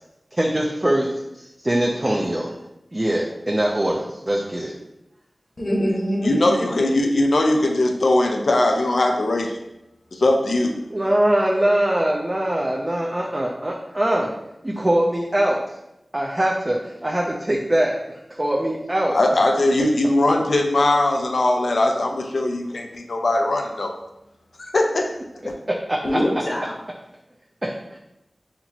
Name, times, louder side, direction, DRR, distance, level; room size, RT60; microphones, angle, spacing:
voice 1, 0.3-2.5 2.9-4.7 10.9-14.3 14.6-15.6 16.1-18.0 18.4-19.2 25.7-26.2 27.6-28.0, right 1 dB, 25° right, -2 dB, 0.4 m, -22 dB
voice 2, 5.6-7.1 26.0-26.7, equal, 45° left, -2 dB, 0.9 m, -24 dB
voice 3, 6.2-9.6 10.1-10.7 19.1-23.9 24.6-25.1 25.4-25.5, left 2 dB, 80° left, 3 dB, 0.5 m, -20 dB
4.3 x 2.8 x 2.8 m, 0.88 s
wide cardioid pair, 70°, 0 cm